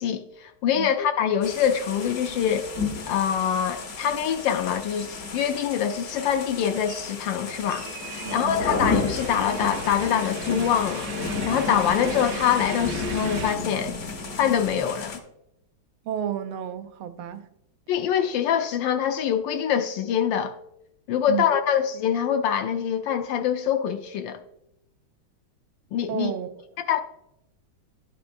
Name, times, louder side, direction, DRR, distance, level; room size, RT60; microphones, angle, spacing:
voice 1, 0.0-2.7 3.1-13.9 14.4-15.2 17.9-20.6 21.1-24.4 25.9-26.3 26.9-27.0, left 9 dB, 75° left, 1.2 m, -25 dB
sound 1, 1.4-15.2, left 4 dB, 55° left, 0.7 m, -32 dB
sound 2, 4.4-4.5 4.7-5.8 6.1-13.6, right 7 dB, 70° right, 0.8 m, -40 dB
voice 2, 8.2-8.6 16.0-17.5 21.3-21.5 26.1-26.5, right 10 dB, 90° right, 1.5 m, -31 dB
11.5 x 6.5 x 2.6 m
omnidirectional pair, 2.3 m